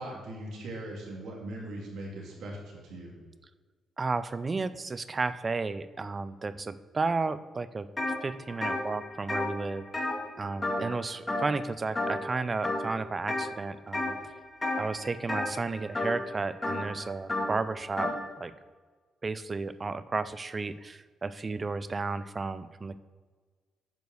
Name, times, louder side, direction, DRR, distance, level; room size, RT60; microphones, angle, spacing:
voice 1, 0.0-3.1, right 1 dB, 80° right, -2 dB, 2.9 m, -40 dB
voice 2, 4.0-7.9 8.2-10.1 10.4-14.2 14.8-18.5 19.2-23.0, right 3 dB, 30° right, 14 dB, 0.5 m, -33 dB
sound 1, 8.0-8.2 8.5-11.0 11.3-11.6 11.9-12.3 12.6-13.4 13.9-14.2 14.6-18.2, left 2 dB, 20° left, 2.2 m, -32 dB
9.3 x 5.2 x 6.4 m, 1.4 s
cardioid pair, 95°, 0 cm